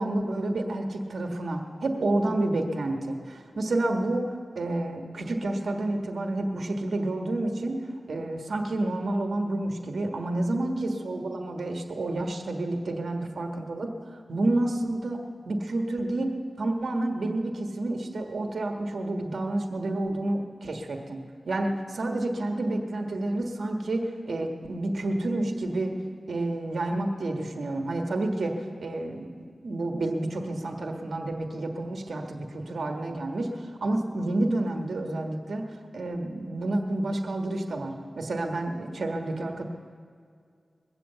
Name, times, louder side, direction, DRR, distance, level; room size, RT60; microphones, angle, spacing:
voice 1, 0.0-4.3 4.5-7.8 8.1-21.2 21.5-25.9 26.3-29.3 29.6-35.6 35.9-39.6, right 2 dB, 75° right, 3 dB, 1.5 m, -29 dB
21.0 x 7.8 x 7.9 m, 2.2 s
wide cardioid pair, 75°, 0 cm